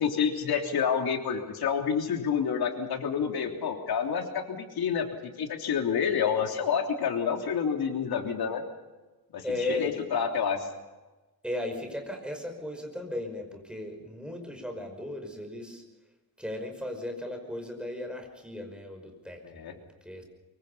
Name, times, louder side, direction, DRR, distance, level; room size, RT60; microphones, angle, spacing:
voice 1, 0.0-8.6 9.3-10.7 19.4-19.7, left 7 dB, 75° left, 3 dB, 3.4 m, -28 dB
voice 2, 9.4-10.0 11.4-15.8 16.4-20.2, left 1 dB, ahead, 4 dB, 5.6 m, -36 dB
24.5 x 23.5 x 5.6 m, 1.2 s
cardioid pair, 115°, 38 cm